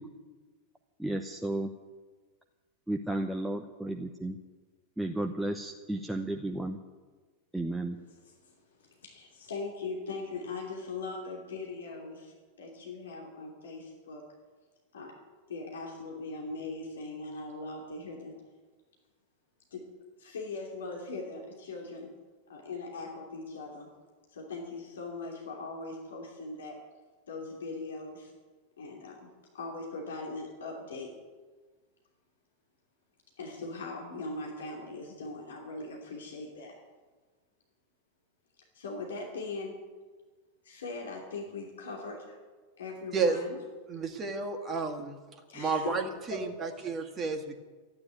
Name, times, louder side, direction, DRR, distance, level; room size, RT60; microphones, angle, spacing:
voice 1, 1.0-1.7 2.9-4.4 5.0-6.8 7.5-8.0, right 1 dB, 5° right, 2 dB, 0.9 m, -33 dB
voice 2, 8.1-8.6 8.8-14.2 14.9-15.1 15.5-18.3 19.7-19.8 20.2-22.1 22.5-23.9 24.3-26.8 27.3-28.3 28.8-29.3 29.5-31.1 33.4-36.7 38.7-39.8 40.6-42.4 42.8-43.6 45.5-45.9 46.3-46.7, left 3 dB, 65° left, 0 dB, 2.9 m, -40 dB
voice 3, 43.9-45.2 45.5-47.6, right 4 dB, 25° right, 3 dB, 2.0 m, -31 dB
14.0 x 9.8 x 9.4 m, 1.4 s
figure-of-eight pair, 90°, 0 cm